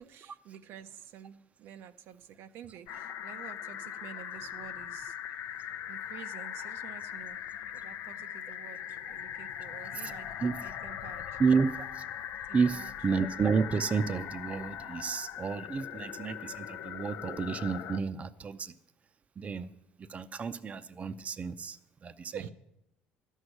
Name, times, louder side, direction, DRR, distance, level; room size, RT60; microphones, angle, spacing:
voice 1, 0.0-5.2 5.9-7.4 7.7-10.3 10.6-11.4 12.5-12.9 22.3-22.5, right 9 dB, 70° right, 0.6 m, -49 dB
sound 1, 2.9-18.0, left 10 dB, 80° left, 0.6 m, -40 dB
voice 2, 11.4-12.2 12.5-18.8 19.4-19.7 20.0-22.5, right 5 dB, 35° right, 0.6 m, -31 dB
12.5 x 6.5 x 9.8 m
cardioid pair, 95°, 4 cm